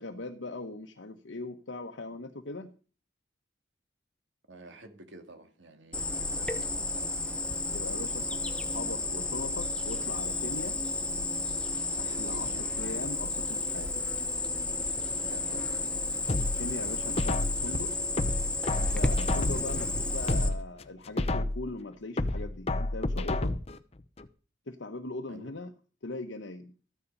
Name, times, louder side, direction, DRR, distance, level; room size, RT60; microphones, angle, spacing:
voice 1, 0.0-2.7 7.7-10.8 12.0-14.0 16.6-17.9 18.7-23.6 24.7-25.7 26.0-26.7, left 2 dB, 70° left, 1.0 m, -40 dB
voice 2, 4.5-7.2 12.3-12.7 15.2-15.8 19.3-19.6 25.3-25.6, right 2 dB, 70° right, 2.3 m, -49 dB
Cricket, 5.9-20.5, left 2 dB, 5° left, 1.0 m, -32 dB
sound 1, 16.3-17.7 18.2-19.8 20.2-21.7 22.2-23.8 24.2-24.3, left 2 dB, 30° left, 0.7 m, -30 dB
14.0 x 9.8 x 5.4 m
head